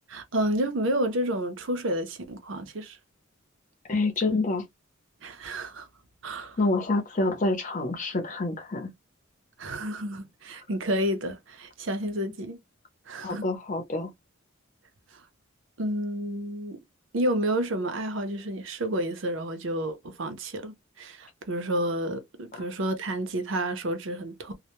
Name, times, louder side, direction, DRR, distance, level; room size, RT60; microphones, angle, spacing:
voice 1, 0.1-3.0 5.2-5.9 6.2-6.6 9.6-12.6 13.1-13.4 15.8-16.8 17.1-24.5, right 1 dB, 60° right, 0.6 m, -30 dB
voice 2, 3.9-4.6 6.6-8.9 13.2-14.1, left 2 dB, 35° left, 0.7 m, -27 dB
2.2 x 2.1 x 2.9 m
head